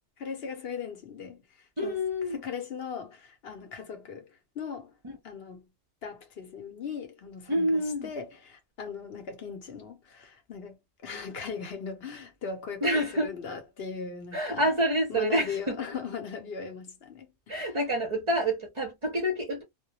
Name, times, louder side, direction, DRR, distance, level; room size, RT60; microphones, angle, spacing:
voice 1, 0.2-1.4 1.8-2.0 2.3-4.9 5.2-5.7 6.0-14.7 15.1-17.6, left 6 dB, 60° left, 0.8 m, -39 dB
voice 2, 1.8-2.4 5.0-5.2 7.5-8.1 12.8-13.3 14.3-15.8 17.5-19.6, equal, 35° right, 0.5 m, -27 dB
2.2 x 2.1 x 2.8 m
omnidirectional pair, 1.3 m